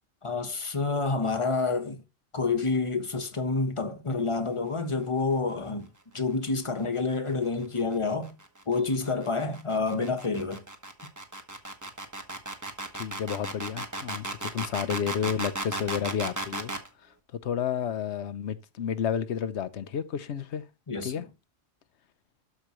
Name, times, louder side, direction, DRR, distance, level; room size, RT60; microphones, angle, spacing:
voice 1, 0.2-2.0 2.3-8.3 8.7-10.6 20.9-21.2, left 3 dB, 30° left, 1.1 m, -28 dB
sound 1, 7.6-16.9, right 2 dB, 15° right, 1.3 m, -35 dB
voice 2, 13.0-16.7 17.4-20.6 21.0-21.2, left 8 dB, 85° left, 1.0 m, -31 dB
12.5 x 5.1 x 3.0 m
omnidirectional pair, 1.1 m